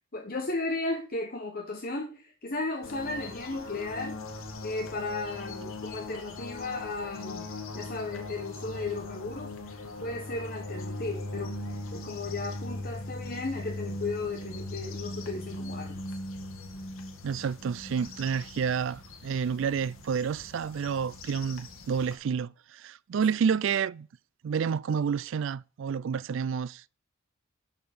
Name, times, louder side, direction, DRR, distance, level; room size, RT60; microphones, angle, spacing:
voice 1, 0.1-4.2 4.6-7.5 7.7-11.6 11.9-16.2, left 2 dB, 45° left, 1.1 m, -35 dB
sound 1, 2.8-22.1, left 2 dB, 80° left, 1.9 m, -40 dB
voice 2, 17.2-24.1 24.4-26.8, right 6 dB, 65° right, 0.3 m, -29 dB
12.0 x 4.5 x 5.3 m
head